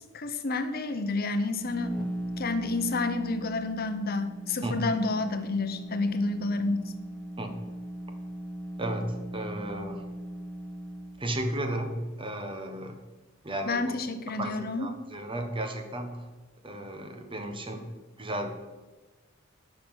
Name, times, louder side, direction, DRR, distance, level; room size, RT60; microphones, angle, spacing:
voice 1, 0.1-6.8 13.7-14.9, left 3 dB, 50° left, 9 dB, 0.8 m, -30 dB
sound 1, 1.4-11.3, right 1 dB, 5° left, 0.8 m, -39 dB
voice 2, 8.8-10.0 11.2-13.0 13.4-13.9 14.4-16.2 16.6-17.8 18.2-18.5, right 1 dB, 25° right, 5 dB, 1.4 m, -34 dB
11.0 x 5.9 x 7.9 m, 1.2 s
head